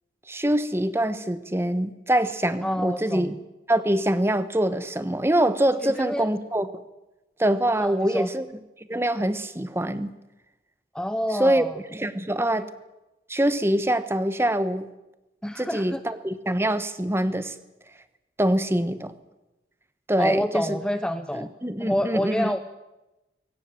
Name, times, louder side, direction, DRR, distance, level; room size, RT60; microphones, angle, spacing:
voice 1, 0.3-3.3 3.7-6.7 7.4-8.5 8.9-10.1 11.4-11.6 11.9-12.7 13.3-14.9 15.6-17.5 18.4-19.1 20.1-20.8 21.3-22.5, right 1 dB, 15° right, 12 dB, 1.0 m, -24 dB
voice 2, 2.6-3.4 5.9-6.3 7.8-8.3 10.9-11.8 12.5-12.6 15.4-16.0 20.2-21.5 21.8-22.6, equal, 5° left, 9 dB, 0.6 m, -28 dB
22.5 x 18.5 x 7.6 m, 1.0 s
head